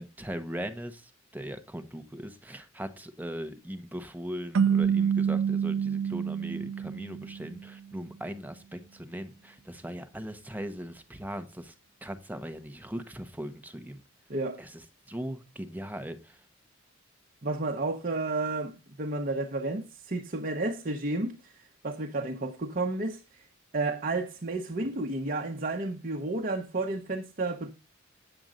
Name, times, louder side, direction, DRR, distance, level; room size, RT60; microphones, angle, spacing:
voice 1, 0.0-11.7 12.0-14.0 14.6-16.4, equal, 10° right, 1.0 m, -39 dB
sound 1, 4.5-7.7, right 7 dB, 80° right, 0.4 m, -27 dB
voice 2, 14.3-14.6 17.4-23.4 23.7-27.7, right 2 dB, 45° right, 1.0 m, -32 dB
8.9 x 7.9 x 3.9 m
head